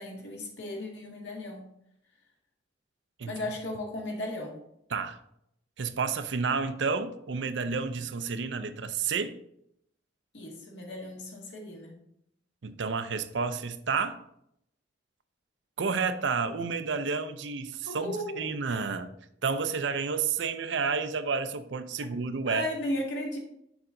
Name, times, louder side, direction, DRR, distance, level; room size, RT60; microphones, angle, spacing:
voice 1, 0.0-1.7 3.3-4.6 10.3-12.0 17.9-18.5 22.5-23.4, left 1 dB, 75° left, 1.8 m, -35 dB
voice 2, 5.8-9.4 12.6-14.2 15.8-19.1 19.4-22.7, right 5 dB, 75° right, 0.5 m, -30 dB
7.1 x 5.2 x 3.7 m
head